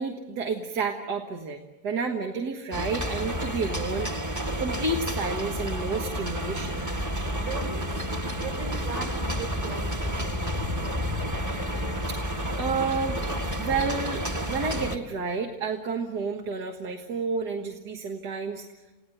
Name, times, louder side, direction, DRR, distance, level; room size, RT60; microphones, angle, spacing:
voice 1, 0.0-4.1 4.6-6.8 12.1-13.2 13.6-18.6, right 4 dB, 80° right, 2 dB, 2.1 m, -30 dB
sound 1, 2.7-15.0, equal, 15° right, 1.0 m, -30 dB
voice 2, 7.3-7.9 8.3-10.4, right 4 dB, 65° right, 3 dB, 6.4 m, -38 dB
30.0 x 17.5 x 9.2 m, 1.2 s
omnidirectional pair, 1.7 m